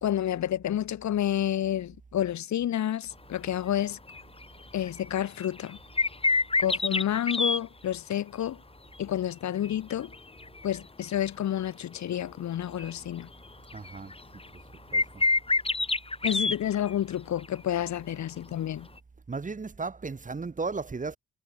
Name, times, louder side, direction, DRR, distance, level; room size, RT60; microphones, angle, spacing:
voice 1, 0.0-4.0 4.7-5.8 6.6-8.6 9.0-10.1 10.6-13.3 16.2-18.9, left 11 dB, 70° left, 2.9 m, -29 dB
sound 1, 4.1-4.4 4.8-7.6 9.6-10.8 11.2-11.3 12.8-12.9 13.4-14.6 14.9-17.1 17.4-17.5 19.0-19.1, left 3 dB, 20° left, 2.4 m, -27 dB
voice 2, 13.7-14.1 14.9-15.2 19.3-21.2, right 4 dB, 25° right, 2.0 m, -35 dB
cardioid pair, 90°, 30 cm